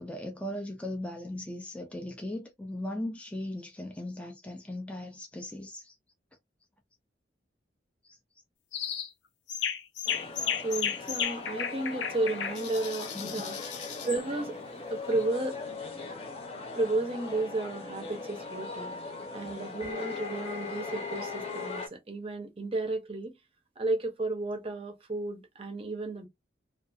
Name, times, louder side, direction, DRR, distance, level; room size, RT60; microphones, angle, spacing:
voice 1, 0.0-6.0 8.0-8.2 13.1-13.4, left 1 dB, 5° left, 0.4 m, -38 dB
sound 1, 8.7-9.1 9.5-14.2, left 8 dB, 75° left, 0.5 m, -34 dB
sound 2, 10.1-21.9, left 4 dB, 30° left, 0.8 m, -39 dB
voice 2, 10.6-13.6 14.0-14.6 14.9-15.6 16.7-19.0 19.3-23.4 23.8-26.3, right 2 dB, 30° right, 0.6 m, -33 dB
2.4 x 2.3 x 2.5 m
head